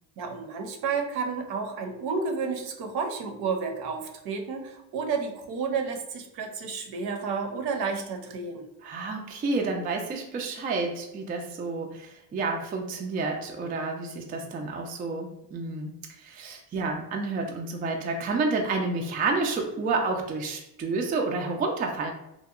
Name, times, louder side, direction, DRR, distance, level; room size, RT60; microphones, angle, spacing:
voice 1, 0.2-8.6, right 5 dB, 65° right, 4 dB, 0.7 m, -31 dB
voice 2, 8.8-22.1, right 3 dB, 25° right, 2 dB, 0.3 m, -30 dB
2.8 x 2.1 x 2.4 m, 0.88 s
supercardioid pair, 90°, 41 cm